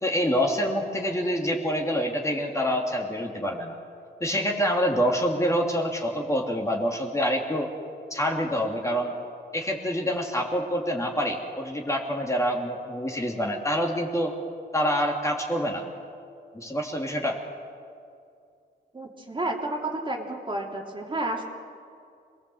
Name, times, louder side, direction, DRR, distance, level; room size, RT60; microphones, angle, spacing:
voice 1, 0.0-3.8 4.2-7.7 8.1-9.1 9.5-14.3 14.7-15.8 16.5-17.4, equal, 15° left, 0 dB, 3.0 m, -26 dB
voice 2, 18.9-21.4, right 2 dB, 30° right, 0 dB, 3.2 m, -31 dB
26.5 x 20.0 x 8.0 m, 2.4 s
wide cardioid pair, 105°, 18 cm